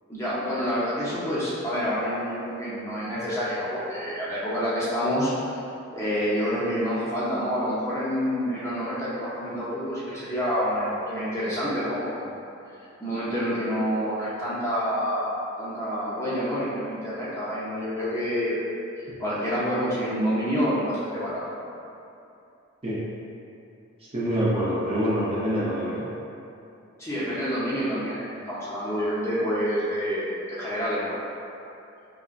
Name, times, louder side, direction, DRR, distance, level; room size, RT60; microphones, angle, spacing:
voice 1, 0.1-5.6 5.9-12.3 13.0-18.5 19.0-21.4 27.0-31.2, equal, 15° left, -10 dB, 0.6 m, -28 dB
voice 2, 24.1-26.0, equal, 25° right, -9 dB, 0.6 m, -25 dB
4.8 x 2.2 x 2.4 m, 2.8 s
head